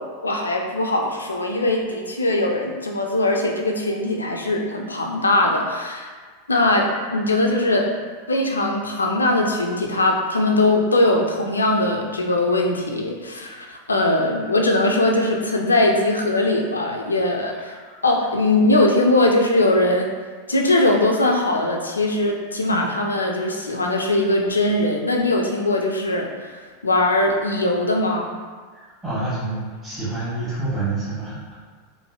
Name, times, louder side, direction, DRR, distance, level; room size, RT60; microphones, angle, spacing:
voice 1, 0.0-6.1 6.5-7.9 8.3-17.8 18.0-20.1 20.5-28.3, left 2 dB, 80° left, 1 dB, 0.3 m, -21 dB
voice 2, 17.5-18.0 28.7-31.4, right 2 dB, 10° right, -14 dB, 0.9 m, -28 dB
3.0 x 2.5 x 2.3 m, 1.5 s
figure-of-eight pair, 90°, 0 cm